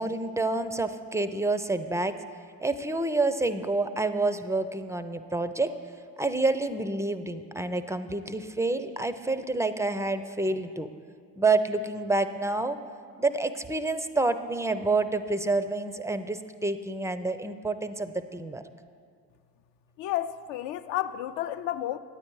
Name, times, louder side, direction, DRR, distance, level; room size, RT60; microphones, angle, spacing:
voice 1, 0.0-2.2 2.6-5.7 6.2-10.9 11.4-12.8 13.1-18.6, right 2 dB, 5° right, 0.4 m, -28 dB
voice 2, 20.0-22.0, left 12 dB, 65° left, 0.6 m, -31 dB
9.4 x 8.9 x 4.7 m
hypercardioid pair, 55°, 47 cm